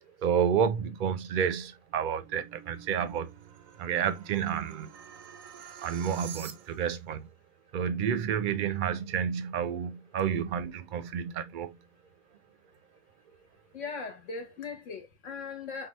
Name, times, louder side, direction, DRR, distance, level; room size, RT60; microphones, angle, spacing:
voice 1, 0.2-3.3 3.8-4.9 5.8-7.3 7.7-11.8, right 8 dB, 50° right, 0.7 m, -30 dB
sound 1, 1.8-7.0, right 9 dB, 85° right, 1.1 m, -48 dB
voice 2, 13.7-15.9, left 4 dB, 70° left, 1.4 m, -39 dB
5.8 x 2.4 x 3.0 m
omnidirectional pair, 1.3 m